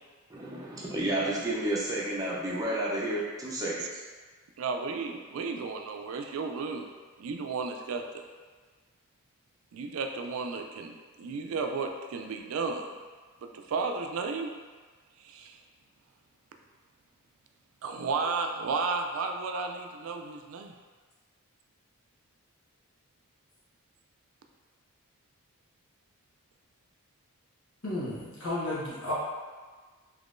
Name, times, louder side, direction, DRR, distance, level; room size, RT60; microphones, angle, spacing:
voice 1, 0.3-4.0, right 1 dB, 15° right, -6 dB, 0.6 m, -31 dB
voice 2, 4.6-6.9 7.2-8.2 9.7-12.9 13.4-14.5 15.2-15.6 17.8-20.7, right 4 dB, 70° right, 4 dB, 0.4 m, -33 dB
voice 3, 27.8-29.1, left 1 dB, 80° left, -7 dB, 1.1 m, -33 dB
3.6 x 2.9 x 2.5 m, 1.4 s
head